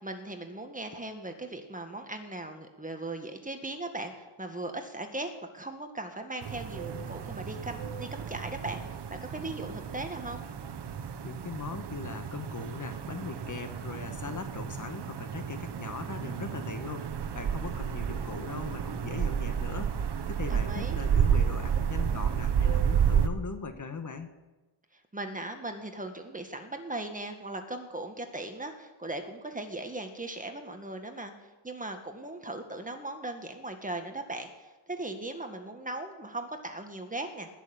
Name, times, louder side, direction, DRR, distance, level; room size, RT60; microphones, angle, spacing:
voice 1, 0.0-8.8 9.1-10.5 20.5-21.0 25.1-31.3 31.6-37.5, right 2 dB, 15° right, 5 dB, 1.8 m, -38 dB
sound 1, 6.4-23.3, right 8 dB, 55° right, 1.2 m, -31 dB
voice 2, 11.2-24.3, left 4 dB, 35° left, 7 dB, 1.5 m, -40 dB
20.0 x 6.8 x 8.5 m, 1.1 s
cardioid pair, 100°, 50 cm